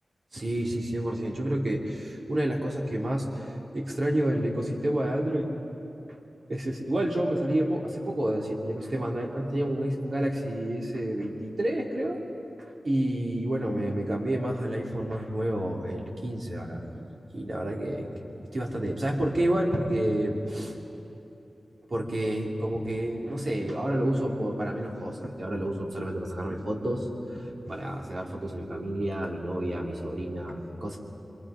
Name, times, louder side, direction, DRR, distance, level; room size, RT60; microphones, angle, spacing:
voice 1, 0.3-5.5 6.5-12.2 12.8-17.0 17.3-18.1 18.5-20.7 21.9-27.0 27.3-31.0, right 1 dB, 50° right, -1 dB, 2.9 m, -29 dB
27.0 x 24.5 x 5.1 m, 2.9 s
wide cardioid pair, 85°, 0 cm